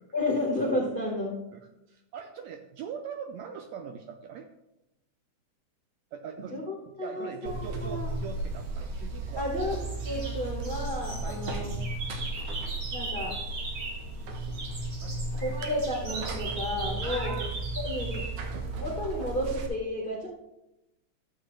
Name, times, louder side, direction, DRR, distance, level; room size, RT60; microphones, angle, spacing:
voice 1, 0.1-1.4 6.4-8.1 9.4-9.8 10.0-11.7 12.9-13.4 15.4-17.4 17.8-18.2 18.7-20.3, left 1 dB, 80° left, -2 dB, 0.4 m, -32 dB
voice 2, 1.5-4.5 6.1-6.6 7.0-9.5 11.2-11.4 15.0-15.6 17.0-17.5 18.5-18.6, right 7 dB, 80° right, 6 dB, 1.6 m, -41 dB
Buzz, 7.5-19.7, right 2 dB, 65° right, 1.7 m, -35 dB
sound 1, 8.4-9.2 9.6-14.1 14.3-18.3, right 3 dB, 45° right, 2.0 m, -40 dB
13.0 x 7.1 x 3.2 m, 0.92 s
omnidirectional pair, 3.7 m